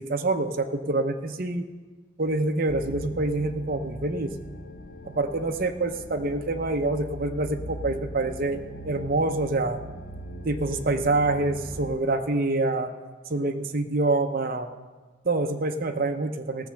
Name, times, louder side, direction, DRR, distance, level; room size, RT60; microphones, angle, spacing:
voice 1, 0.0-1.6 2.2-4.3 5.0-9.8 10.4-12.9 13.3-14.7 15.2-16.7, right 2 dB, 45° right, 5 dB, 0.8 m, -26 dB
sound 1, 2.7-12.0, right 1 dB, 45° left, 0.8 m, -40 dB
16.5 x 6.9 x 6.4 m, 1.4 s
head